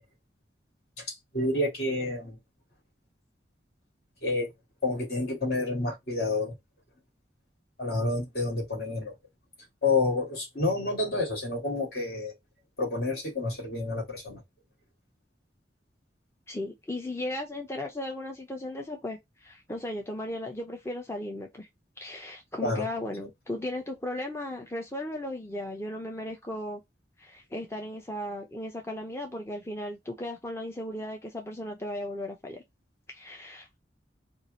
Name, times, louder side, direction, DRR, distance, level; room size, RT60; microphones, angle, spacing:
voice 1, 1.0-2.4 4.2-4.5 4.8-6.5 7.8-9.1 9.8-12.3 12.8-14.4 22.6-22.9, left 2 dB, 60° left, 2.6 m, -29 dB
voice 2, 16.5-21.7 22.0-26.8 27.2-32.6 33.1-33.8, left 1 dB, 15° left, 0.7 m, -36 dB
4.6 x 2.5 x 4.0 m
head